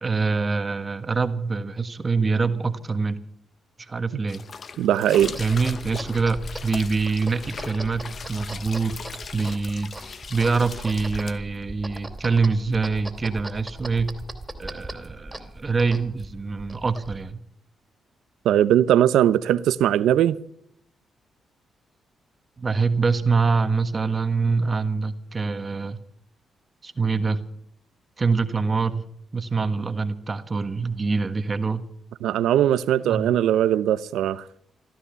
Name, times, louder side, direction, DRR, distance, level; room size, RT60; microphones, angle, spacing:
voice 1, 0.0-3.2 3.8-4.4 5.4-8.9 9.3-14.1 14.6-17.4 22.6-26.0 26.8-27.4 28.2-29.0 29.3-31.8 33.0-33.3, right 4 dB, 35° right, 1.5 m, -25 dB
sound 1, 4.3-11.4, left 5 dB, 55° left, 0.9 m, -39 dB
voice 2, 4.8-5.4 18.4-20.4 32.2-34.4, right 11 dB, 85° right, 0.7 m, -20 dB
sound 2, 5.2-17.3, right 1 dB, 15° right, 2.7 m, -39 dB
15.5 x 12.5 x 6.9 m
supercardioid pair, 60°, 0 cm